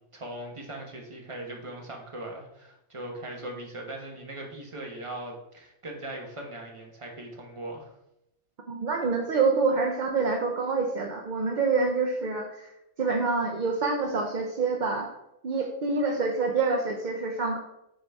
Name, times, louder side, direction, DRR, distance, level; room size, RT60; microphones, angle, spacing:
voice 1, 0.0-7.9, right 1 dB, 25° right, 1 dB, 1.0 m, -40 dB
voice 2, 8.7-12.7 13.0-15.1 15.4-17.6, right 4 dB, 50° right, 1 dB, 0.5 m, -26 dB
7.7 x 4.0 x 3.4 m, 0.85 s
omnidirectional pair, 1.4 m